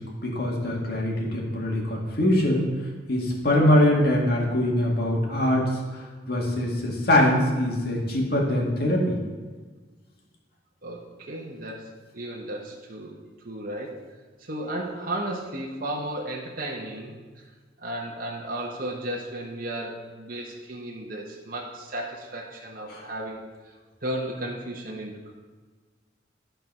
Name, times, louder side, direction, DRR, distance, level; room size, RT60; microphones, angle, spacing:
voice 1, 0.0-2.7 3.1-9.2 22.9-23.0, left 1 dB, 60° left, -2 dB, 2.0 m, -23 dB
voice 2, 10.8-11.9 12.1-14.0 14.4-17.5 17.8-23.7 24.0-25.3, right 1 dB, 50° right, -2 dB, 1.1 m, -34 dB
12.0 x 4.5 x 5.4 m, 1.4 s
head